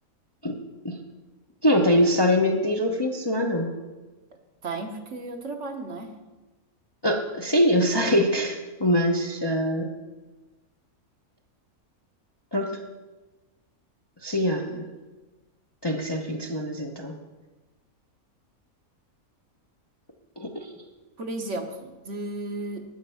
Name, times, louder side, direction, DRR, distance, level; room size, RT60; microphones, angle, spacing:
voice 1, 1.6-3.7 7.0-9.9 12.5-12.8 14.2-14.9 15.8-17.1 20.4-20.7, equal, 20° left, 2 dB, 0.7 m, -23 dB
voice 2, 4.6-6.1 21.2-22.8, right 2 dB, 55° right, 4 dB, 1.4 m, -34 dB
12.5 x 8.3 x 5.6 m, 1.2 s
omnidirectional pair, 1.5 m